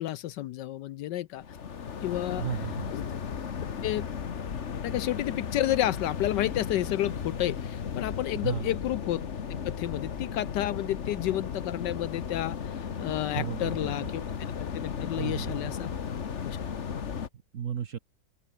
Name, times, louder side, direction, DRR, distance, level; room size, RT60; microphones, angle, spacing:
voice 1, 0.0-1.4 2.0-2.5 2.9-3.1 3.8-4.1 4.8-9.2 9.6-14.2 14.6-15.9 16.4-16.6, left 13 dB, 75° left, 1.1 m, -31 dB
sound 1, 1.4-17.3, left 7 dB, 40° left, 1.3 m, -35 dB
voice 2, 2.4-3.0 8.4-8.7 13.3-14.1 15.2-15.7 17.5-18.0, right 8 dB, 50° right, 1.1 m, -34 dB
open air
omnidirectional pair, 2.1 m